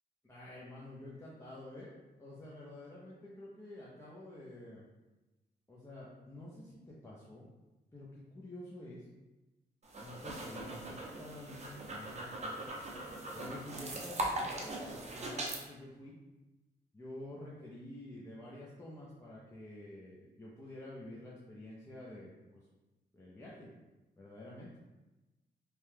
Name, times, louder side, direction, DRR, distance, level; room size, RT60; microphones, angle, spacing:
voice 1, 0.2-4.8 5.7-7.5 7.9-9.1 10.0-12.7 13.3-16.1 16.9-22.7 23.1-23.7 24.2-24.7, left 1 dB, 15° left, -7 dB, 0.5 m, -49 dB
sound 1, 9.8-15.6, right 1 dB, 40° right, 0.6 m, -40 dB
2.9 x 2.2 x 3.3 m, 1.1 s
cardioid pair, 90°, 18 cm